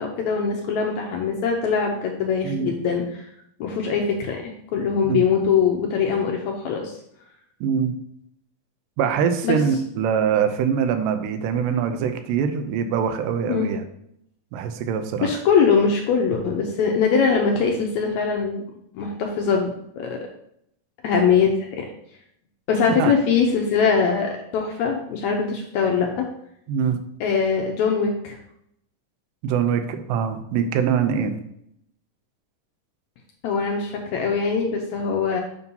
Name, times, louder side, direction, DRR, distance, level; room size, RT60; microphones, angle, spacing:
voice 1, 0.0-3.3 3.6-6.9 9.4-9.6 13.5-13.7 15.2-18.6 18.9-20.2 21.0-21.8 22.7-26.2 27.2-28.4 33.4-35.4, left 6 dB, 80° left, 1 dB, 1.7 m, -22 dB
voice 2, 7.6-7.9 9.0-13.8 14.5-15.3 23.0-23.1 26.7-27.0 29.4-31.4, right 7 dB, 80° right, 7 dB, 2.2 m, -23 dB
6.9 x 2.7 x 5.3 m, 0.74 s
omnidirectional pair, 3.9 m